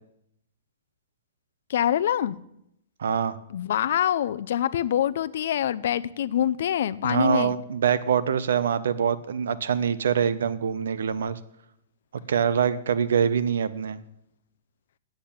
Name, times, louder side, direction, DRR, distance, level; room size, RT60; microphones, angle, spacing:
voice 1, 1.7-2.4 3.5-7.5, left 10 dB, 55° left, 16 dB, 0.5 m, -25 dB
voice 2, 3.0-3.4 7.0-11.4 12.3-14.0, right 7 dB, 80° right, 15 dB, 0.9 m, -24 dB
8.5 x 8.0 x 8.7 m, 0.78 s
hypercardioid pair, 170°, 0 cm